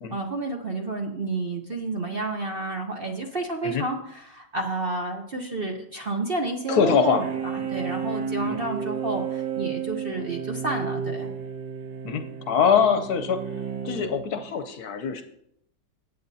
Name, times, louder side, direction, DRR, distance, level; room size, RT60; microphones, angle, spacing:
voice 1, 0.1-11.3, right 2 dB, 45° right, 2 dB, 0.8 m, -30 dB
voice 2, 6.7-7.2 7.6-7.7 8.4-8.6 12.0-13.4 13.8-15.2, left 7 dB, 65° left, 9 dB, 1.1 m, -23 dB
sound 1, 6.9-14.5, right 7 dB, 75° right, 1.6 m, -32 dB
16.0 x 8.6 x 2.8 m, 0.75 s
omnidirectional pair, 1.9 m